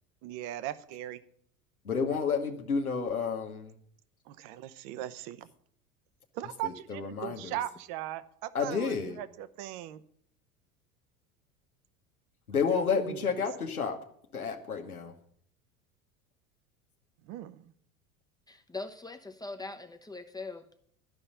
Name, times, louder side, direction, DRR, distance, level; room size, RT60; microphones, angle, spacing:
voice 1, 0.2-1.2 4.3-5.5 6.3-10.0 12.8-13.4 17.3-17.7, right 13 dB, 50° right, 14 dB, 0.9 m, -39 dB
voice 2, 1.8-3.7 6.6-7.6 8.5-9.2 12.5-14.0 14.3-15.1, left 5 dB, 90° left, 3 dB, 1.4 m, -30 dB
voice 3, 18.5-20.6, left 3 dB, 10° left, 6 dB, 0.8 m, -41 dB
12.5 x 5.5 x 8.9 m, 0.64 s
figure-of-eight pair, 80°, 42 cm